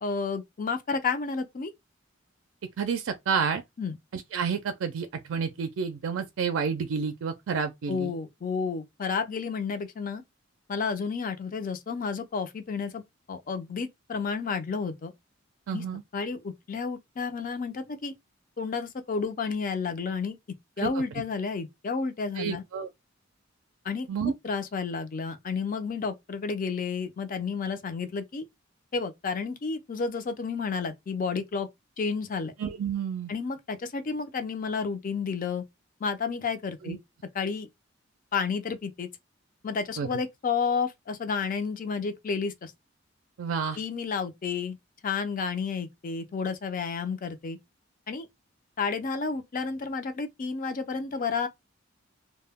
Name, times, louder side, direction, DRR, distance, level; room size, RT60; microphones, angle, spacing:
voice 1, 0.0-1.7 3.8-4.0 7.9-10.2 10.7-13.0 13.3-15.1 15.7-15.8 16.1-18.1 18.6-20.4 20.8-22.6 23.8-24.1 24.4-28.5 28.9-31.7 32.0-32.5 33.3-35.6 36.0-37.0 37.3-37.7 38.3-39.1 39.6-42.7 43.8-44.8 45.0-47.6 48.1-48.3 48.8-51.5, left 5 dB, 45° left, 0.5 m, -31 dB
voice 2, 2.8-3.6 4.1-8.1 15.7-16.0 20.8-21.0 22.4-22.9 24.1-24.3 32.6-33.3 36.8-37.0 40.0-40.1 43.4-43.8, right 6 dB, 85° right, 0.4 m, -30 dB
2.1 x 2.1 x 3.4 m
head